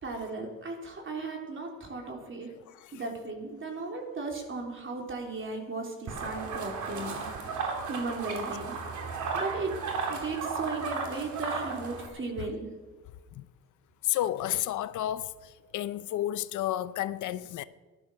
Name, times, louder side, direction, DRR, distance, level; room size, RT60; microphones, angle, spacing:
voice 1, 0.0-2.5 2.9-7.3 7.7-8.8 9.3-9.8 10.1-12.7, right 3 dB, 40° right, 3.6 m, -36 dB
sound 1, 6.1-12.1, right 4 dB, 75° right, 2.8 m, -34 dB
voice 2, 14.0-17.6, left 13 dB, 75° left, 0.7 m, -31 dB
14.5 x 11.5 x 6.3 m
cardioid pair, 90°, 30 cm